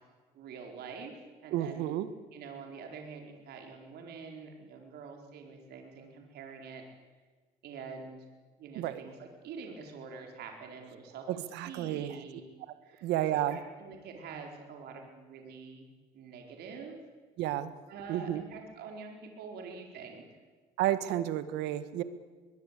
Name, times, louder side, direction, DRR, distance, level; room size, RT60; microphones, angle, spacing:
voice 1, 0.3-1.1 1.4-2.0 2.3-6.8 7.6-8.3 8.6-12.4 12.8-15.9 16.1-17.0 17.9-20.3, right 5 dB, 75° right, 3 dB, 4.6 m, -46 dB
voice 2, 1.5-2.1 8.8-9.0 11.3-12.2 13.0-13.6 17.4-17.7 18.1-18.4 20.8-22.0, right 12 dB, 90° right, 12 dB, 1.7 m, -31 dB
22.5 x 21.5 x 8.5 m, 1.4 s
cardioid pair, 110°, 17 cm